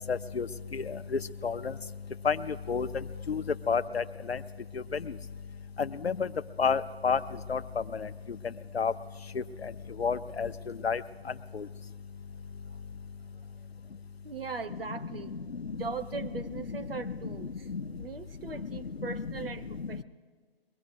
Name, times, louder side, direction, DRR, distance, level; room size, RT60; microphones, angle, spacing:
voice 1, 0.1-0.5 1.4-1.5 2.3-2.4 2.7-2.9 3.3-3.4 3.7-4.0 6.0-6.1 6.6-7.2 7.5-7.6 8.8-8.9 10.0-10.5 10.8-11.0, left 6 dB, 85° left, 12 dB, 0.6 m, -27 dB
voice 2, 14.2-15.3 15.7-17.7 18.0-20.0, right 4 dB, 65° right, 10 dB, 0.9 m, -39 dB
22.5 x 17.5 x 2.6 m, 1.5 s
figure-of-eight pair, 135°, 30 cm